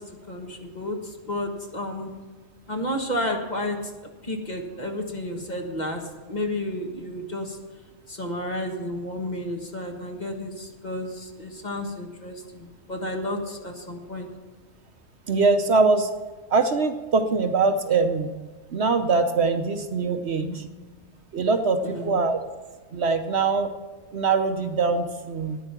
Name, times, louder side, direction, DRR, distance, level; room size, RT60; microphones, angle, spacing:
voice 1, 0.0-2.1 2.7-3.9 4.2-7.6 8.1-14.3 20.4-20.7 21.8-22.2, left 1 dB, 35° left, 2 dB, 1.6 m, -32 dB
voice 2, 15.3-16.1 16.5-18.3 18.7-20.6 21.3-22.4 22.9-23.7 24.1-25.6, right 4 dB, 60° right, 8 dB, 1.0 m, -22 dB
13.5 x 9.8 x 5.8 m, 1.4 s
omnidirectional pair, 1.3 m